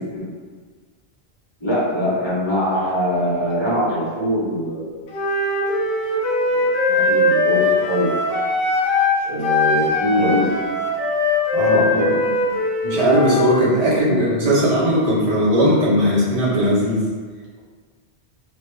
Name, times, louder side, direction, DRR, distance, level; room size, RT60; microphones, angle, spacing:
voice 1, 1.6-4.9 6.5-8.1 9.2-10.5 11.7-12.1 14.0-14.3, left 1 dB, 30° left, -9 dB, 0.7 m, -22 dB
Wind instrument woodwind instrument, 5.1-9.2 9.4-13.6, left 2 dB, 70° left, 0.8 m, -20 dB
voice 2, 11.5-12.3 12.8-17.1, equal, 40° right, -7 dB, 0.8 m, -18 dB
2.3 x 2.2 x 3.0 m, 1.5 s
omnidirectional pair, 1.1 m